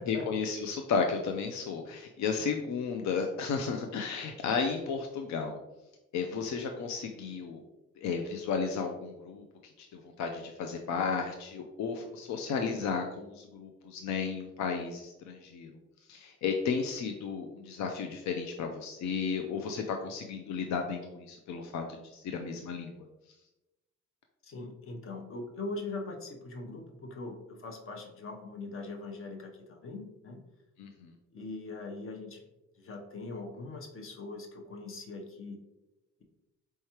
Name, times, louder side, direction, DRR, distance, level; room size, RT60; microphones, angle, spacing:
voice 1, 0.1-5.6 6.1-7.6 8.0-9.4 9.8-15.7 16.1-22.9 30.8-31.1, left 5 dB, 70° left, 4 dB, 0.5 m, -33 dB
voice 2, 24.4-30.4 31.3-32.4 32.8-35.6, left 3 dB, 45° left, 4 dB, 0.8 m, -41 dB
4.6 x 3.2 x 2.9 m, 0.99 s
cardioid pair, 90°, 30 cm